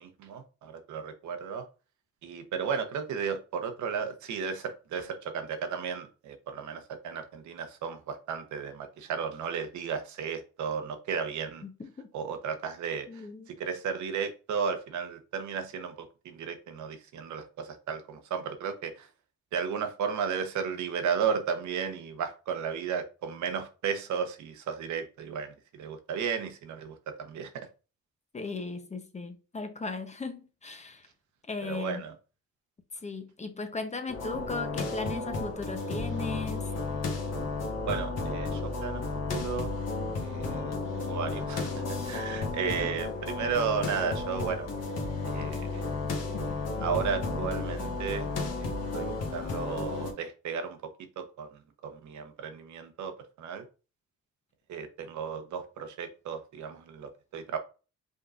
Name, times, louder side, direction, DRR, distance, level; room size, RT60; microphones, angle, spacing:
voice 1, 0.0-1.7 2.2-11.6 12.1-19.1 19.5-27.7 31.6-32.1 37.9-39.0 39.3-39.7 40.1-40.7 41.1-44.7 45.3-45.8 46.8-48.3 48.6-50.8 51.2-53.6 54.7-57.6, right 6 dB, 75° right, 1.0 m, -34 dB
voice 2, 11.6-12.1 13.1-13.5 28.3-31.1 31.5-32.0 33.0-36.7 42.7-42.9, left 3 dB, 25° left, 0.7 m, -37 dB
sound 1, 34.1-50.1, left 3 dB, 55° left, 1.3 m, -33 dB
5.2 x 3.7 x 2.4 m
cardioid pair, 90°, 30 cm